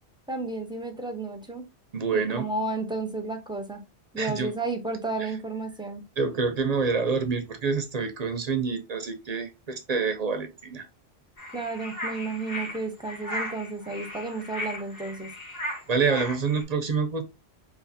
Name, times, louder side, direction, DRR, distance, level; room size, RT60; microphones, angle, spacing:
voice 1, 0.3-1.7 2.1-3.8 4.1-6.0 11.5-15.3, right 3 dB, 5° right, 0.6 m, -32 dB
voice 2, 1.9-2.5 4.2-4.5 5.2-5.4 6.2-10.9 15.9-17.2, right 5 dB, 45° right, 0.6 m, -27 dB
sound 1, 11.4-16.6, left 1 dB, 55° left, 2.1 m, -36 dB
4.0 x 2.6 x 2.6 m
omnidirectional pair, 1.1 m